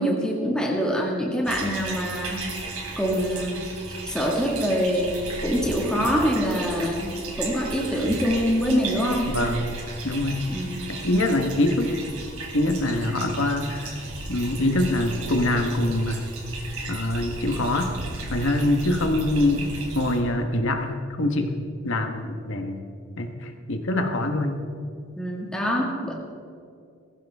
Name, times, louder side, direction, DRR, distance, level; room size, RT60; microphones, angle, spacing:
voice 1, 0.0-2.5 3.0-3.7 4.1-7.1 7.4-9.3 10.5-10.9 25.2-26.1, equal, 5° left, -2 dB, 1.9 m, -25 dB
sound 1, 1.5-20.2, right 2 dB, 85° right, 3.5 m, -35 dB
voice 2, 9.3-9.7 10.0-10.4 10.9-12.0 12.5-14.0 14.3-16.3 16.9-17.9 18.3-19.7 19.9-22.8 23.2-24.6, left 1 dB, 60° left, 5 dB, 1.3 m, -24 dB
21.0 x 15.5 x 3.6 m, 2.4 s
head